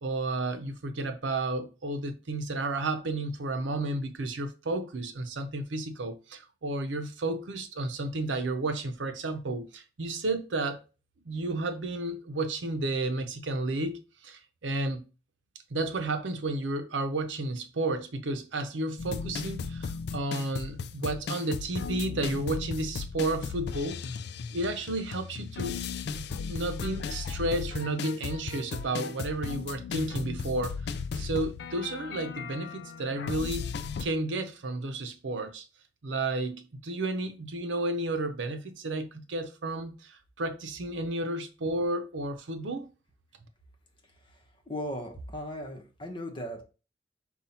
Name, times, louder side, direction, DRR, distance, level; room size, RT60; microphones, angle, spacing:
voice 1, 0.0-10.8 11.2-15.1 15.7-24.0 24.5-25.8 26.1-30.8 31.1-33.7 34.0-35.7 36.0-42.9, right 2 dB, 90° right, 0.7 m, -32 dB
sound 1, 19.0-34.0, left 5 dB, 60° left, 0.4 m, -36 dB
voice 2, 44.7-46.6, equal, 25° left, 0.9 m, -37 dB
5.4 x 2.3 x 4.2 m
head